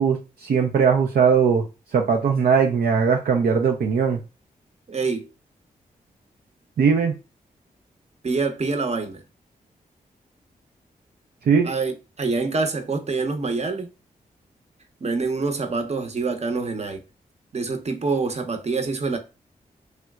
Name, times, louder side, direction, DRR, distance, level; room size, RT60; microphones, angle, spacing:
voice 1, 0.0-1.6 1.9-4.2 6.8-7.1 11.4-11.7, right 6 dB, 75° right, 0.5 m, -19 dB
voice 2, 4.9-5.3 8.2-9.2 11.6-13.9 15.0-17.0 17.5-19.2, right 4 dB, 45° right, 0.8 m, -26 dB
3.2 x 2.8 x 2.3 m
cardioid pair, 45°, 16 cm